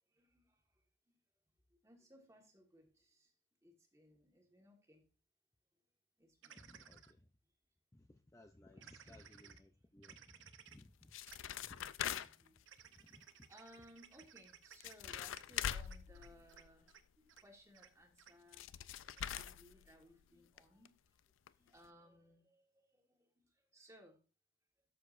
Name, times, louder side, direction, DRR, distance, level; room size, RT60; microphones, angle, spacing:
voice 1, 0.1-0.8 1.7-3.3 3.6-5.0 6.2-6.9 8.7-9.5 11.3-11.9 12.2-12.6 12.9-18.7 19.0-21.2 21.6-24.2, equal, 15° right, 2 dB, 1.5 m, -64 dB
sound 1, 6.4-7.1 8.8-9.6 10.0-10.8 11.3-11.4 11.7-11.8 12.7-16.6 16.9-17.0 17.3-17.4 17.7-17.9 18.2-18.3 19.1-19.5, right 9 dB, 85° right, 0.7 m, -59 dB
voice 2, 6.6-7.3 7.9-11.1 11.6-11.8 12.1-12.2 12.9-13.2, left 1 dB, 15° left, 5 dB, 0.5 m, -61 dB
sound 2, 10.8-12.6 14.4-14.5 14.7-16.9 18.2-18.3 18.5-20.2 20.6-20.7 20.9-21.0 21.5-21.6 21.8-21.9, left 10 dB, 90° left, 0.4 m, -43 dB
12.5 x 6.7 x 2.5 m, 0.34 s
head